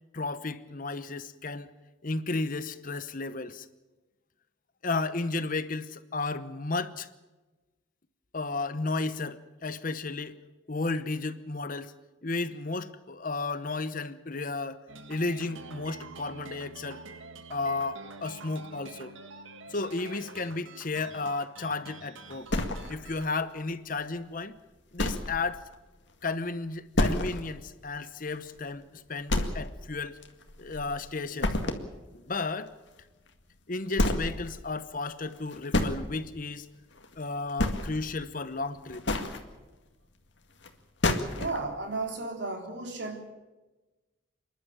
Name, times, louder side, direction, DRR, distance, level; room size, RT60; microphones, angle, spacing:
voice 1, 0.1-1.7 2.0-3.7 4.8-7.1 8.3-10.4 10.7-11.9 12.2-17.0 17.5-19.1 19.7-22.5 22.9-24.6 24.9-25.7 26.2-30.2 30.6-31.6 32.1-32.7 33.7-36.7 37.2-39.2, left 3 dB, 45° left, 0.9 m, -33 dB
sound 1, 14.9-23.3, right 3 dB, 80° right, 1.9 m, -47 dB
sound 2, 22.5-23.2 23.7-23.8 24.3-24.4 25.0-25.4 25.7-25.8 26.2-26.3 26.9-27.5 27.9-28.0 28.4-28.5 29.3-29.9 30.2-31.0 31.4-31.9 33.3-33.4 33.9-34.4 35.3-35.9 37.0-37.2 37.5-38.1 38.8-39.4 40.6-40.7 41.0-41.6, left 1 dB, 60° left, 2.1 m, -28 dB
voice 2, 41.4-43.3, right 3 dB, 60° right, 3.6 m, -34 dB
28.0 x 11.5 x 9.2 m
head